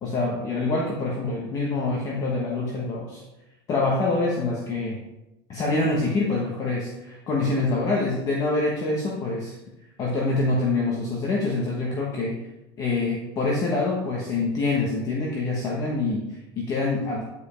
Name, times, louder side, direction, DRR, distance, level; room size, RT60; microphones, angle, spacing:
voice 1, 0.0-3.2 3.7-5.0 5.5-9.6 10.0-12.3 12.8-17.2, left 3 dB, 25° left, -3 dB, 1.2 m, -25 dB
9.4 x 5.2 x 5.1 m, 0.95 s
supercardioid pair, 165°, 13 cm